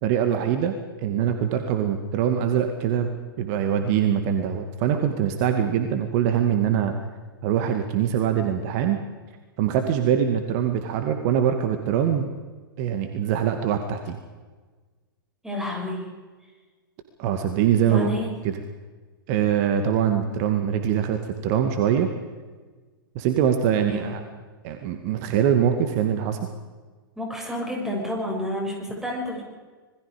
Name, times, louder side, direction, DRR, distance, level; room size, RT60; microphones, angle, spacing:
voice 1, 0.0-0.7 1.0-3.1 3.4-6.9 7.4-9.0 9.6-12.3 12.8-14.2 17.2-18.1 18.4-18.5 19.3-22.1 23.2-24.2 24.6-26.4, right 9 dB, 45° right, 6 dB, 2.2 m, -23 dB
voice 2, 15.4-16.1 17.8-18.3 23.7-24.1 27.2-29.4, left 1 dB, 5° right, -1 dB, 7.3 m, -30 dB
26.5 x 21.5 x 5.1 m, 1.4 s
figure-of-eight pair, 105°, 12 cm